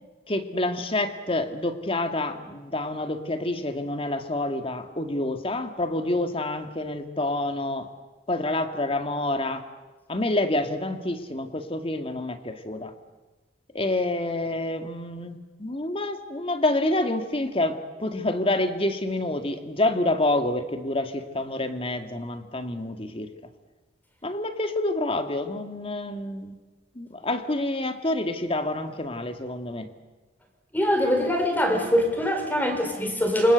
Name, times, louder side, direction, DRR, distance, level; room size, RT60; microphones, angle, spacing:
voice 1, 0.3-7.9 8.3-9.6 10.1-12.9 13.7-23.3 24.2-26.6 27.0-29.9, left 2 dB, 30° left, 8 dB, 2.0 m, -28 dB
voice 2, 30.7-33.5, equal, 10° left, 4 dB, 5.0 m, -23 dB
28.5 x 25.5 x 8.2 m, 1.2 s
head